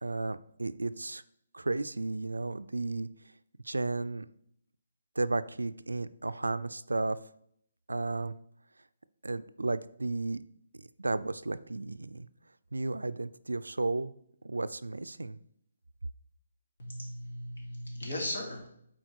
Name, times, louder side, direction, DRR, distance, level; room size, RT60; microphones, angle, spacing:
voice 1, 0.0-1.2 1.5-3.1 3.6-4.3 5.2-7.2 7.9-8.3 9.2-10.4 10.8-12.3 12.7-14.1 14.4-15.4, right 2 dB, 85° right, 14 dB, 0.4 m, -33 dB
voice 2, 16.8-18.7, left 1 dB, 65° left, -1 dB, 2.8 m, -37 dB
7.6 x 4.3 x 4.6 m, 0.70 s
figure-of-eight pair, 140°, 0 cm